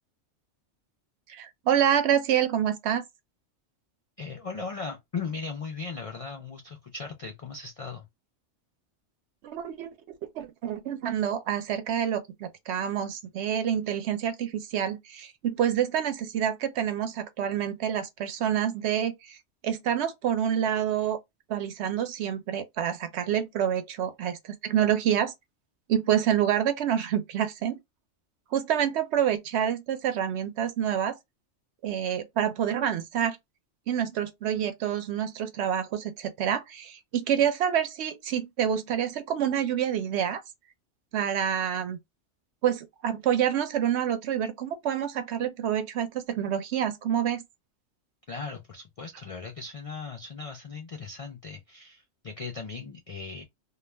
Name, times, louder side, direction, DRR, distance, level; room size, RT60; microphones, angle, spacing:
voice 1, 1.3-3.0 9.4-9.9 10.4-19.4 19.6-21.2 21.5-25.3 25.9-27.8 28.5-31.2 31.8-33.4 33.9-40.4 41.1-42.0 42.6-47.4, right 9 dB, 70° right, 0.8 m, -27 dB
voice 2, 4.2-8.1 48.3-53.4, left 4 dB, 60° left, 0.3 m, -38 dB
2.3 x 2.2 x 3.1 m
omnidirectional pair, 1.2 m